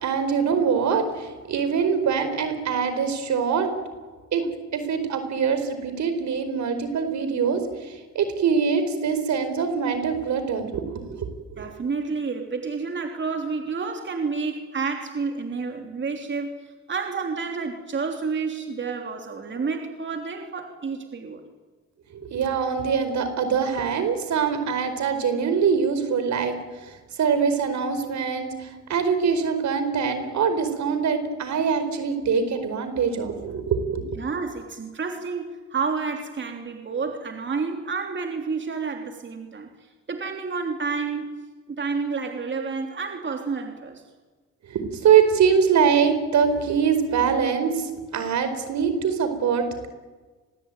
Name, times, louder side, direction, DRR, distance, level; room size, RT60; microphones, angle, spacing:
voice 1, 0.0-3.7 4.3-4.4 4.7-11.7 22.1-26.5 27.2-34.2 44.7-49.9, right 6 dB, 65° right, 9 dB, 4.7 m, -23 dB
voice 2, 11.6-21.4 34.2-39.7 40.1-41.3 41.7-44.0, right 4 dB, 40° right, 3 dB, 3.4 m, -30 dB
28.5 x 22.0 x 9.3 m, 1.3 s
cardioid pair, 90°, 30 cm